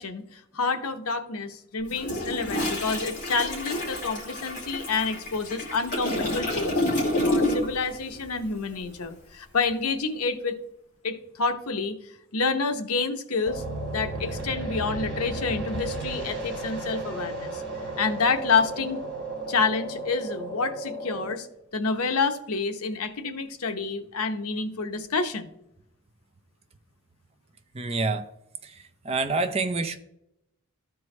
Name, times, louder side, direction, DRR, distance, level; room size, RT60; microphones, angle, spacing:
voice 1, 0.0-6.7 7.1-10.6 11.0-12.0 12.3-13.6 13.9-17.6 18.0-19.0 19.5-21.5 21.7-25.5, left 4 dB, 85° left, 8 dB, 0.8 m, -28 dB
Toilet flush, 1.9-7.8 8.1-8.4, left 1 dB, 35° left, 2.7 m, -29 dB
sound 1, 13.4-21.3, right 2 dB, 50° right, 2.2 m, -34 dB
voice 2, 27.7-28.3 28.6-30.0, right 3 dB, 25° right, 7 dB, 0.5 m, -27 dB
13.5 x 4.6 x 3.2 m, 0.81 s
head